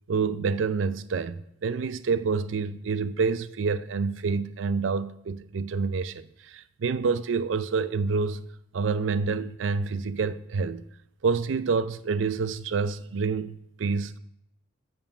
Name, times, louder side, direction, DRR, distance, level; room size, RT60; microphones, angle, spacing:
voice 1, 0.1-8.5 8.7-10.8 11.2-14.2, right 5 dB, 90° right, 0.4 m, -28 dB
7.1 x 5.4 x 5.5 m
head